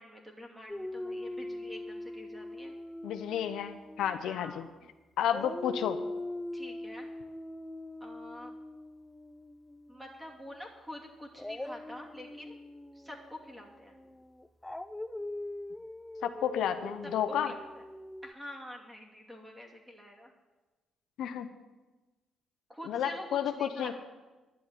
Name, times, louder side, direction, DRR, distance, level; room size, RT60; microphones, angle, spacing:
voice 1, 0.0-2.7 4.2-4.7 6.5-7.1 8.0-8.5 9.9-12.6 12.9-14.0 17.0-17.8 18.2-20.3 22.7-24.0, left 1 dB, 5° right, 0 dB, 2.6 m, -47 dB
Dog, 0.7-4.9 5.2-10.2 11.3-18.3, left 1 dB, 10° left, 0.5 m, -42 dB
voice 2, 3.0-4.6 5.2-6.0 16.2-17.5 21.2-21.5 22.9-24.0, left 9 dB, 80° left, 8 dB, 0.8 m, -31 dB
11.5 x 7.1 x 9.4 m, 1.2 s
cardioid pair, 90°, 0 cm